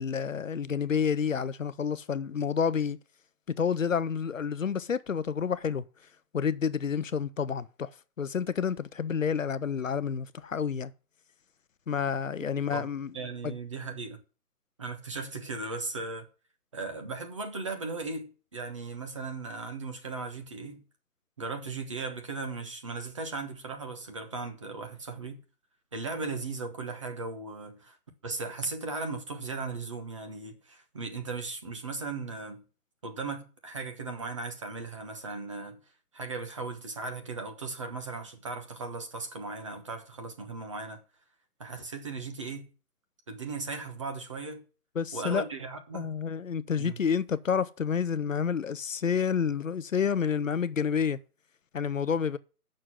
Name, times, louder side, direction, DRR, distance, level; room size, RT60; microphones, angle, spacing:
voice 1, 0.0-3.0 3.6-5.8 6.3-7.9 8.2-10.9 11.9-13.1 13.4-13.5 45.0-45.4 45.9-51.2 51.7-52.4, left 7 dB, 55° left, 0.7 m, -29 dB
voice 2, 13.1-14.2 14.8-16.3 16.7-20.8 21.4-25.4 25.9-28.0 28.2-32.6 33.0-35.8 36.1-41.0 41.6-42.7 43.3-44.6 45.1-46.1 46.8-47.0, right 3 dB, 20° right, 1.1 m, -37 dB
8.0 x 6.4 x 7.6 m
hypercardioid pair, 165°, 46 cm